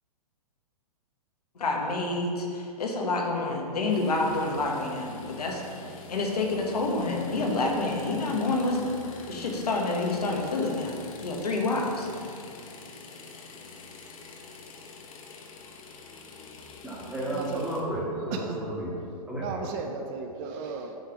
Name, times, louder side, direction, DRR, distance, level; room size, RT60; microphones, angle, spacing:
voice 1, 1.5-9.0 9.3-12.3, left 2 dB, 85° left, 0 dB, 1.3 m, -28 dB
sound 1, 3.9-17.8, left 3 dB, 60° left, 1.0 m, -46 dB
voice 2, 16.8-18.9 19.3-19.6, right 1 dB, 5° right, -6 dB, 1.6 m, -32 dB
voice 3, 17.3-17.7 18.3-18.6 19.4-21.0, right 5 dB, 35° right, 4 dB, 0.5 m, -35 dB
7.8 x 3.3 x 5.8 m, 2.5 s
hypercardioid pair, 130°, 20 cm